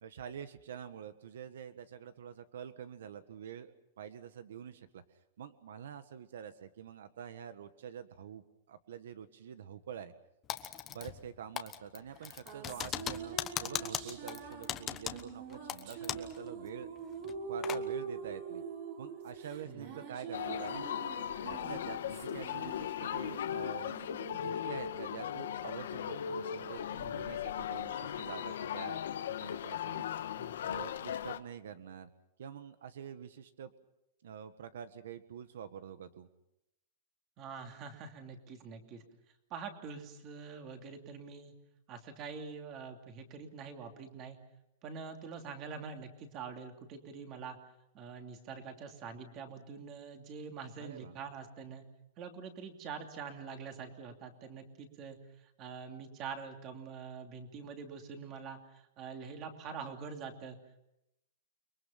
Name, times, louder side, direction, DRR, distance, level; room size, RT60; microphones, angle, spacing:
voice 1, 0.0-5.0 5.4-10.1 10.9-16.9 17.5-18.6 19.0-20.8 21.4-23.9 24.4-29.0 29.4-30.1 30.6-32.1 32.4-33.7 34.2-36.3 50.8-51.1, right 8 dB, 75° right, 11 dB, 1.5 m, -47 dB
Typing, 10.5-11.3 11.6-16.4 16.7-16.8 17.2-17.8, left 10 dB, 20° left, 1.1 m, -39 dB
sound 1, 12.2-25.8, right 5 dB, 40° right, 4.7 m, -44 dB
sound 2, 20.3-31.4, left 9 dB, 80° left, 1.4 m, -38 dB
voice 2, 37.4-39.0 39.5-41.5 41.9-44.4 44.8-47.6 47.9-51.8 52.2-60.6, right 5 dB, 25° right, 5 dB, 2.8 m, -45 dB
29.5 x 23.0 x 5.9 m, 0.84 s
supercardioid pair, 175°, 0 cm